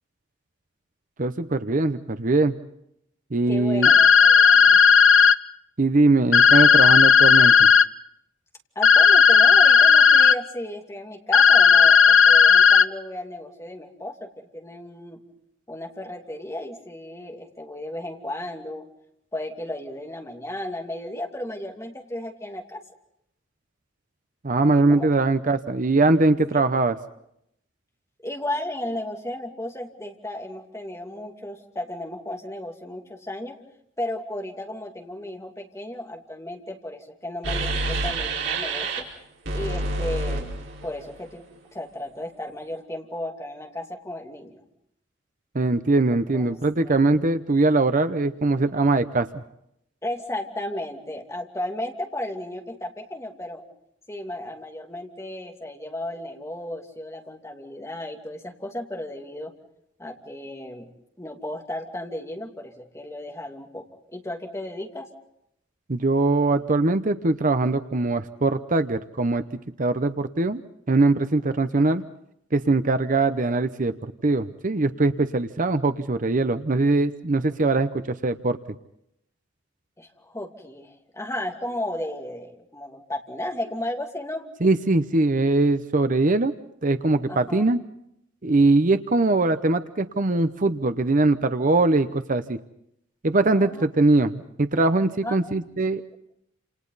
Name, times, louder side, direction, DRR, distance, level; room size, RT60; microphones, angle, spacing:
voice 1, 1.2-2.5 3.3-3.9 5.8-7.7 24.4-27.0 45.5-49.4 65.9-69.4 69.8-70.6 70.9-72.0 72.5-78.6 84.6-86.5 86.8-87.8 88.4-92.6 93.2-96.0, right 2 dB, 45° right, 10 dB, 0.8 m, -21 dB
voice 2, 3.5-4.8 8.7-15.2 15.7-18.8 19.3-22.8 24.6-25.1 26.5-26.6 28.2-33.6 34.0-39.1 39.5-40.5 40.8-41.5 41.7-44.6 46.3-46.5 46.8-47.0 50.0-53.6 54.1-59.5 60.0-60.9 61.2-65.1 80.0-84.5 87.3-87.6 93.5-93.8 95.2-95.6, left 1 dB, 15° left, 2 dB, 2.7 m, -34 dB
sound 1, 3.8-5.4 6.3-7.9 8.8-10.4 11.3-12.9, left 6 dB, 80° left, 0.8 m, -14 dB
sound 2, 37.4-39.0 39.4-41.1, right 2 dB, 70° right, 4.8 m, -28 dB
29.0 x 28.0 x 4.1 m, 0.75 s
head